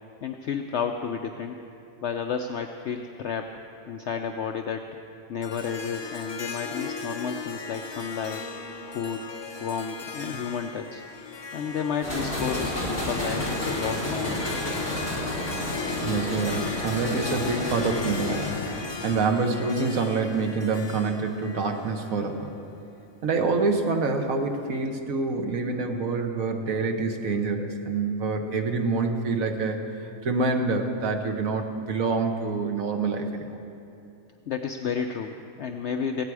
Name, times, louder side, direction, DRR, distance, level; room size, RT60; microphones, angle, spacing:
voice 1, 0.2-1.6 2.0-3.5 3.9-4.8 5.3-8.4 8.9-9.2 9.6-11.0 11.5-14.5 34.5-36.2, left 6 dB, 60° left, 5 dB, 0.9 m, -31 dB
Harp, 5.4-22.7, left 5 dB, 30° left, 0.5 m, -37 dB
sound 1, 12.0-19.1, left 1 dB, 10° left, 3.3 m, -31 dB
voice 2, 16.0-18.5 19.0-22.5 23.2-29.8 30.2-33.5, right 4 dB, 80° right, 4 dB, 1.6 m, -26 dB
16.5 x 16.0 x 4.8 m, 2.7 s
omnidirectional pair, 1.4 m